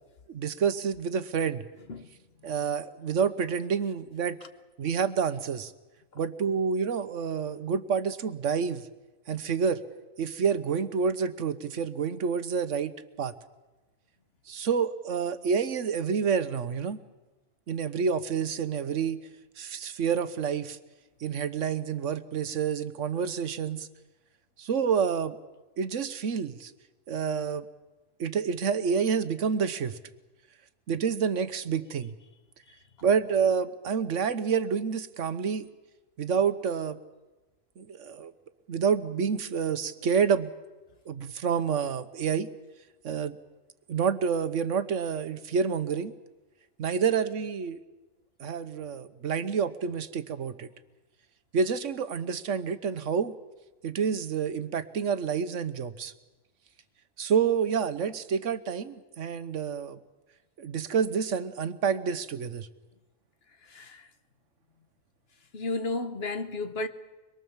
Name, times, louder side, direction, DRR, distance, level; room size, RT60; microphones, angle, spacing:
voice 1, 0.3-1.6 2.4-4.4 4.8-5.7 6.2-8.9 9.3-9.8 10.2-12.9 13.2-13.3 14.5-17.0 17.7-19.2 19.6-20.8 21.2-23.9 24.6-25.4 25.8-26.7 27.1-27.7 28.2-30.0 30.9-32.1 33.0-35.7 36.2-37.0 37.8-38.3 38.7-40.5 41.1-42.5 43.0-43.4 43.9-46.1 46.8-47.8 48.4-50.7 51.5-53.4 53.8-56.1 57.2-60.0 60.6-62.7, right 6 dB, 75° right, 1.3 m, -28 dB
voice 2, 63.7-64.1 65.5-66.9, left 2 dB, 55° left, 1.3 m, -32 dB
24.0 x 22.5 x 7.2 m
omnidirectional pair, 1.3 m